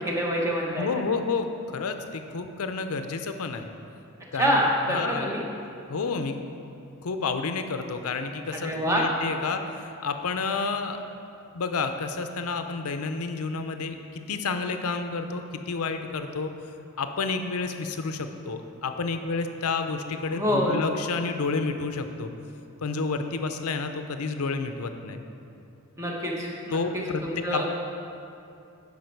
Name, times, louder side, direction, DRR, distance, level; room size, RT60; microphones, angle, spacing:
voice 1, 0.0-0.9 4.4-5.4 8.5-9.1 20.3-20.8 26.0-27.7, equal, 15° right, -2 dB, 1.0 m, -26 dB
voice 2, 0.8-3.7 4.3-4.6 4.9-5.4 5.9-6.4 7.0-11.0 11.5-16.5 17.0-22.3 22.8-25.2 26.7-27.7, left 4 dB, 90° left, 7 dB, 0.6 m, -30 dB
11.5 x 5.2 x 4.6 m, 2.6 s
head